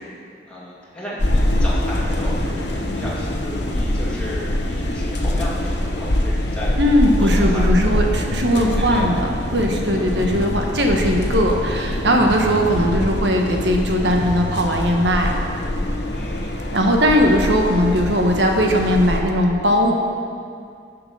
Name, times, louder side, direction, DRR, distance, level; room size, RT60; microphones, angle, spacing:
voice 1, 0.4-6.8 7.2-8.1 8.5-9.2 10.0-10.3 16.1-16.6, left 1 dB, 5° left, -7 dB, 2.1 m, -34 dB
sound 1, 1.2-19.2, left 1 dB, 75° left, 1.1 m, -24 dB
voice 2, 6.8-15.4 16.7-19.9, equal, 75° right, 1 dB, 1.2 m, -19 dB
sound 2, 8.3-16.3, left 2 dB, 40° left, 0.5 m, -34 dB
10.5 x 6.0 x 6.7 m, 2.3 s
head